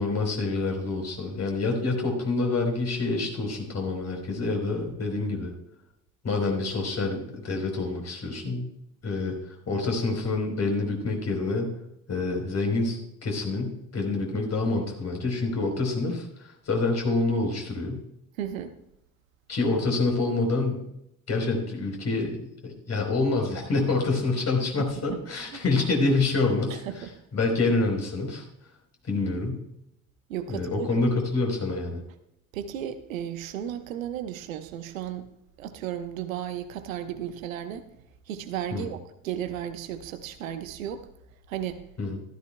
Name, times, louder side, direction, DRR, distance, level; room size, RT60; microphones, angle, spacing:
voice 1, 0.0-5.5 6.2-8.7 9.0-9.4 9.7-11.7 12.1-18.0 19.5-20.8 21.3-26.8 27.3-28.5 29.0-29.6 30.5-32.0 38.7-38.9 42.0-42.2, left 3 dB, 40° left, 2 dB, 3.9 m, -27 dB
voice 2, 18.4-18.7 24.8-25.2 25.5-25.6 26.7-27.1 30.3-31.1 32.5-35.3 35.6-37.9 38.3-41.1 41.5-41.8, right 10 dB, 75° right, 9 dB, 1.0 m, -34 dB
15.0 x 14.0 x 2.2 m, 0.80 s
figure-of-eight pair, 55°, 41 cm